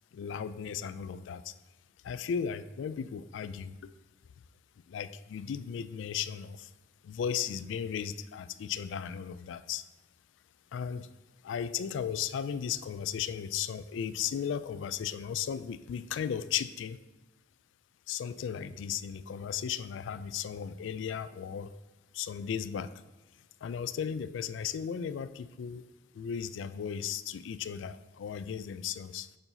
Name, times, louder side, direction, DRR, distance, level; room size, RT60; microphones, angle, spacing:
voice 1, 0.1-1.5 2.0-3.9 4.9-6.7 7.0-9.8 10.7-11.1 11.4-17.0 18.1-21.7 22.1-22.9 23.6-25.8 26.1-29.3, left 8 dB, 75° left, 14 dB, 0.3 m, -35 dB
6.8 x 2.7 x 5.6 m, 1.2 s
head